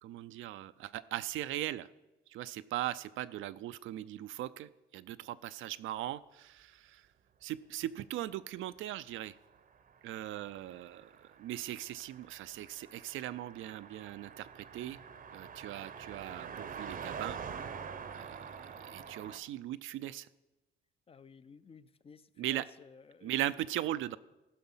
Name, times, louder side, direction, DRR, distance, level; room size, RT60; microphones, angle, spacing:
voice 1, 0.0-1.9 2.3-7.1 7.4-9.4 10.0-11.1 11.4-15.0 15.3-17.4 18.1-20.3 22.4-22.6 23.2-24.2, right 14 dB, 80° right, 14 dB, 0.4 m, -39 dB
Car passing by, 9.3-19.4, right 6 dB, 45° right, 0.7 m, -46 dB
voice 2, 21.1-23.3, left 5 dB, 30° left, 15 dB, 0.4 m, -55 dB
14.5 x 5.9 x 5.5 m, 1.1 s
cardioid pair, 90°, 20 cm